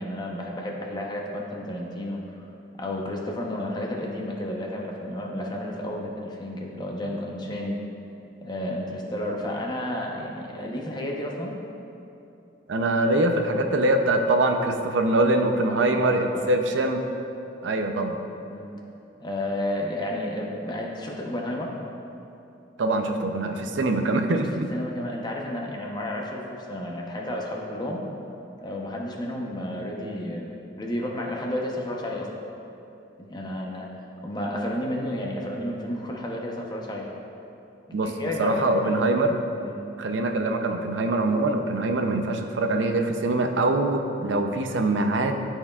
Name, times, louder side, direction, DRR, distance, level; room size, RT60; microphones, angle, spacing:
voice 1, 0.0-2.4 2.8-7.8 8.4-11.5 15.6-16.5 18.4-18.7 19.2-21.7 24.5-28.0 28.6-32.3 33.2-33.9 34.2-37.1 38.0-39.0 39.6-39.8, left 1 dB, 25° left, -1 dB, 0.8 m, -32 dB
voice 2, 12.7-17.0 17.6-18.2 22.8-24.7 37.9-39.4 40.0-45.3, right 2 dB, 85° right, 5 dB, 0.5 m, -23 dB
13.5 x 4.5 x 2.4 m, 2.9 s
head